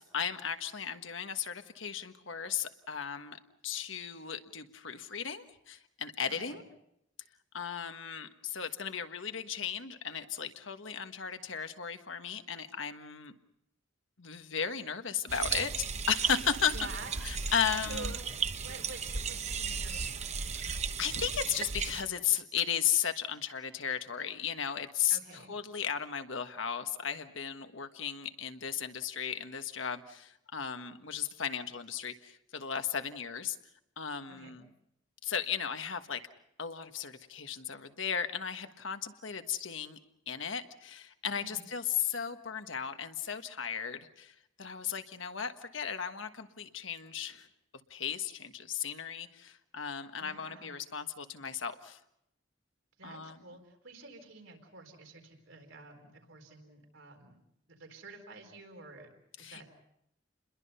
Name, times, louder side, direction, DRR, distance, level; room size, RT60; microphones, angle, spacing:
voice 1, 0.0-6.6 7.5-13.3 14.2-15.7 16.1-16.7 17.2-18.1 20.6-25.2 25.5-33.6 34.0-34.7 35.2-36.2 36.6-40.0 40.3-47.5 47.9-52.0 53.0-53.4 59.4-59.6, left 8 dB, 80° left, 8 dB, 1.4 m, -35 dB
voice 2, 6.3-6.6 16.7-17.2 17.8-20.4 25.1-25.6 34.3-34.6 41.4-41.7 50.2-50.8 53.0-57.4 57.7-59.1 59.4-59.6, right 3 dB, 85° right, 4 dB, 4.2 m, -49 dB
sound 1, 15.3-22.0, right 5 dB, 35° right, 0.9 m, -35 dB
29.0 x 22.0 x 5.6 m, 0.79 s
head